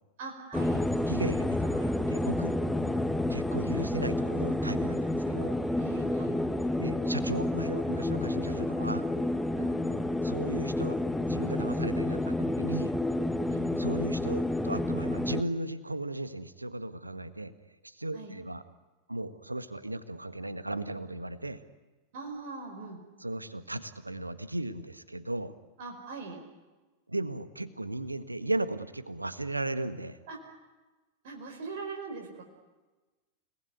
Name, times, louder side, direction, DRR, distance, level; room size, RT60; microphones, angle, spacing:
voice 1, 0.2-0.9 2.6-2.9 5.8-6.4 9.6-9.7 13.5-13.7 18.1-18.3 22.1-23.0 25.8-26.4 30.3-30.4 31.2-32.4, right 4 dB, 55° right, 2 dB, 4.9 m, -41 dB
sound 1, 0.5-15.4, left 1 dB, 5° left, 1.3 m, -30 dB
voice 2, 1.1-2.5 3.3-5.6 6.8-9.1 10.2-12.9 13.8-17.5 17.8-18.6 19.1-21.6 23.2-25.5 27.1-30.2, right 2 dB, 85° right, 12 dB, 1.5 m, -36 dB
30.0 x 19.5 x 9.6 m, 1.2 s
figure-of-eight pair, 90°, 0 cm